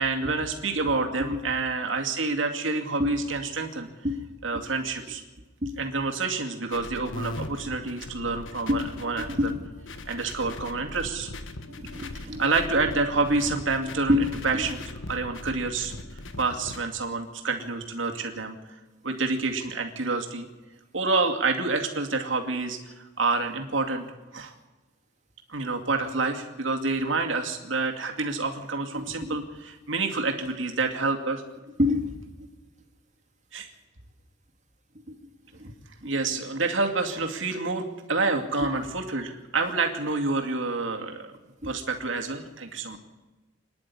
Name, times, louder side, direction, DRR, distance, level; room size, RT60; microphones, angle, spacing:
voice 1, 0.0-3.9 4.4-5.2 5.8-9.5 10.1-11.3 12.4-14.8 15.1-15.9 16.4-18.6 19.0-20.5 20.9-24.1 24.3-24.5 25.5-31.4 33.5-33.7 36.0-41.3 41.6-43.0, right 3 dB, 70° right, 3 dB, 2.4 m, -28 dB
sound 1, 6.7-16.8, left 2 dB, 70° left, 1.5 m, -40 dB
voice 2, 9.2-9.5 11.8-12.4 14.1-14.2 14.5-14.7 28.9-29.4 31.8-32.1 35.1-35.2 35.6-35.7 36.0-36.1 38.6-38.7 41.6-41.7, left 1 dB, 35° right, 5 dB, 2.4 m, -27 dB
25.5 x 10.5 x 9.7 m, 1.2 s
head